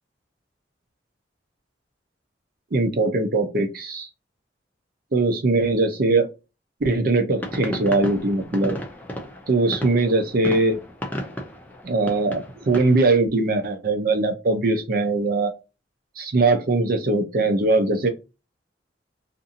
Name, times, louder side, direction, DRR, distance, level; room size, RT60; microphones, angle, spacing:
voice 1, 2.7-4.1 5.1-6.3 6.8-8.8 9.5-10.8 11.8-15.5 16.2-18.1, right 2 dB, 50° right, 0.5 m, -21 dB
sound 1, 7.3-13.0, equal, 10° left, 0.5 m, -33 dB
2.6 x 2.5 x 2.6 m
head